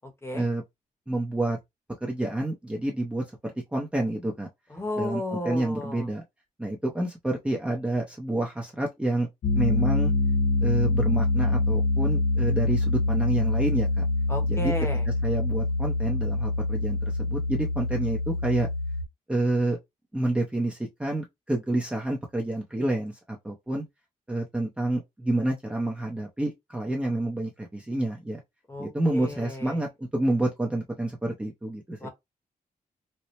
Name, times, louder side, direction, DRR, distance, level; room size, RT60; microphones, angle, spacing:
voice 1, 1.1-1.6 2.0-4.5 5.0-6.2 6.6-9.3 9.5-10.1 10.6-14.0 14.5-14.7 15.2-18.7 19.3-19.8 20.1-23.8 24.3-28.4 28.8-32.1, right 1 dB, 10° right, 0.7 m, -28 dB
voice 2, 4.7-6.1 14.3-15.0 28.7-29.8 32.0-32.1, left 1 dB, 20° left, 1.0 m, -33 dB
Piano, 9.4-19.0, left 2 dB, 60° left, 1.0 m, -25 dB
4.2 x 2.1 x 3.1 m
wide cardioid pair, 140°, 14 cm